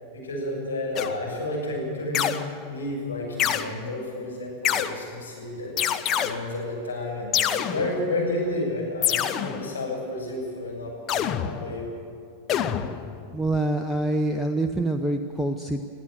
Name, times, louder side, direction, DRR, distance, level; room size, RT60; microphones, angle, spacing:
voice 1, 0.1-2.3 2.7-5.7 6.2-11.9, left 1 dB, 70° left, -2 dB, 7.2 m, -31 dB
sound 1, 1.0-1.4 2.1-2.7 3.4-3.7 4.6-5.2 5.8-6.6 7.3-8.3 9.0-9.9 11.1-12.0 12.5-13.4, left 9 dB, 30° left, 0.9 m, -26 dB
voice 2, 13.3-15.8, right 2 dB, ahead, 4 dB, 0.8 m, -25 dB
22.5 x 14.5 x 8.0 m, 2.4 s
figure-of-eight pair, 90°, 0 cm